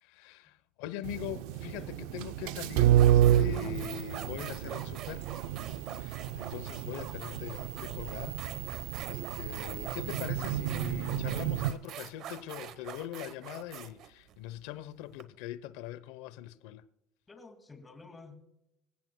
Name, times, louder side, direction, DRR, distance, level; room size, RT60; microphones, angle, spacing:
voice 1, 0.0-5.3 5.9-8.4 8.7-16.8, left 12 dB, 90° left, 0.8 m, -42 dB
sound 1, 1.0-11.7, right 11 dB, 85° right, 0.5 m, -30 dB
sound 2, 2.3-2.4 2.9-15.2, right 9 dB, 50° right, 1.0 m, -44 dB
voice 2, 17.3-18.4, left 3 dB, 15° left, 2.1 m, -51 dB
25.0 x 15.5 x 2.2 m
cardioid pair, 160°, 0 cm